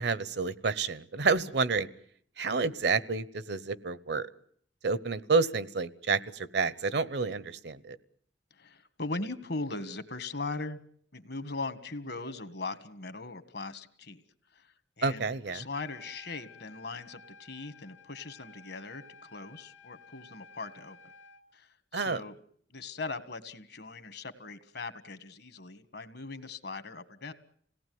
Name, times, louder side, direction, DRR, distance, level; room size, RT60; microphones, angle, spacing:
voice 1, 0.0-1.9 2.4-4.3 4.8-8.0 15.0-15.6 21.9-22.2, right 4 dB, 65° right, 17 dB, 1.0 m, -29 dB
voice 2, 8.5-10.8 11.1-14.2 14.5-21.0 21.5-22.4 22.7-27.3, left 3 dB, 60° left, 11 dB, 1.7 m, -40 dB
Trumpet, 15.6-21.4, left 4 dB, 85° left, 2.5 m, -54 dB
27.0 x 18.0 x 9.5 m, 0.64 s
head